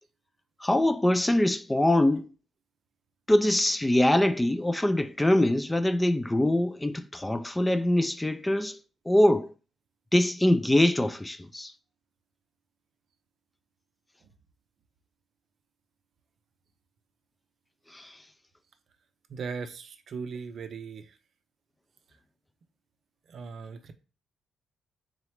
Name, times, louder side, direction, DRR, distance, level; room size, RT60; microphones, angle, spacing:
voice 1, 0.6-2.3 3.3-8.8 9.1-9.5 10.1-11.7 17.9-18.2, left 1 dB, 10° left, 0.3 m, -23 dB
voice 2, 19.3-21.2 23.3-23.9, right 5 dB, 55° right, 0.5 m, -38 dB
3.9 x 3.0 x 3.2 m
cardioid pair, 90°, 0 cm